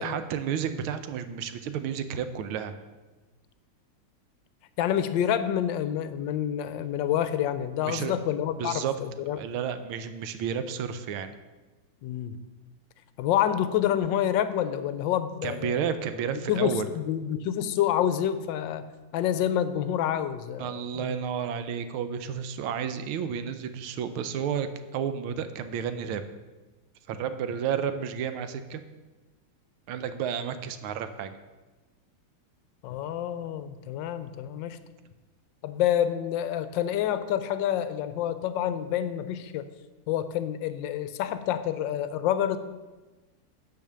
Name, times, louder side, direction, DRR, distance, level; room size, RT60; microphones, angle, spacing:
voice 1, 0.0-2.7 7.8-8.2 8.6-8.9 9.3-11.3 15.4-16.9 20.6-26.2 27.1-28.8 29.9-31.4, right 8 dB, 80° right, 10 dB, 1.5 m, -31 dB
voice 2, 4.8-9.4 12.0-12.4 13.2-15.8 16.5-18.9 19.1-21.1 32.8-34.8 35.6-39.7 40.1-42.6, left 10 dB, 75° left, 12 dB, 1.1 m, -28 dB
9.4 x 5.0 x 6.7 m, 1.2 s
omnidirectional pair, 2.4 m